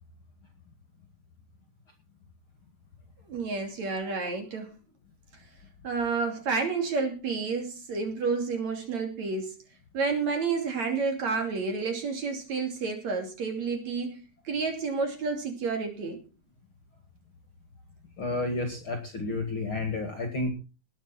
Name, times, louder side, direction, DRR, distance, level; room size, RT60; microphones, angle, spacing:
voice 1, 3.3-4.7 5.8-9.5 9.9-16.2, right 4 dB, 50° right, 4 dB, 3.9 m, -30 dB
voice 2, 18.2-20.5, left 2 dB, 40° left, 4 dB, 2.4 m, -31 dB
20.0 x 8.0 x 4.4 m, 0.32 s
omnidirectional pair, 4.4 m